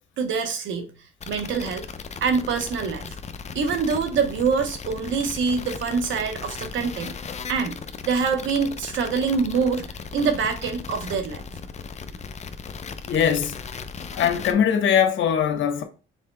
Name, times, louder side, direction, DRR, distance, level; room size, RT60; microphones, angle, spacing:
voice 1, 0.2-0.9 1.3-1.8 2.2-3.2 3.5-7.1 7.5-7.8 8.0-9.9 10.1-11.6 12.1-12.2, right 5 dB, 75° right, 1.1 m, -25 dB
sound 1, 1.2-14.5, left 5 dB, 35° left, 0.6 m, -37 dB
voice 2, 13.0-13.6 14.1-15.8, left 8 dB, 75° left, 1.1 m, -21 dB
5.4 x 4.3 x 2.2 m
cardioid pair, 90°, 20 cm